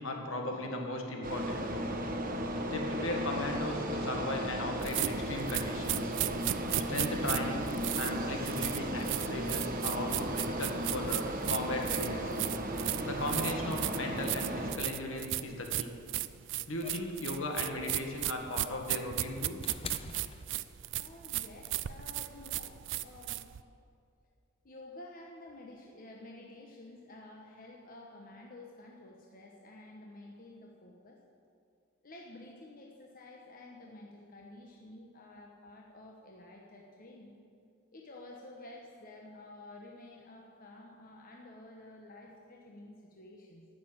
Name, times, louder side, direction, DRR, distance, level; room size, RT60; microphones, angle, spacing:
voice 1, 0.0-1.7 2.7-6.1 6.9-7.7 8.0-12.3 13.0-15.9 16.7-19.6, left 2 dB, 65° left, 2 dB, 1.7 m, -37 dB
sound 1, 1.2-14.7, right 1 dB, 40° right, 1.0 m, -35 dB
sound 2, 4.8-23.6, right 14 dB, 60° right, 0.4 m, -35 dB
sound 3, 16.8-21.1 22.3-22.4, left 5 dB, 25° left, 0.4 m, -47 dB
voice 2, 21.0-23.4 24.6-31.2 32.0-37.4 37.9-43.7, left 2 dB, 40° left, -1 dB, 1.1 m, -51 dB
12.5 x 6.5 x 8.7 m, 2.4 s
head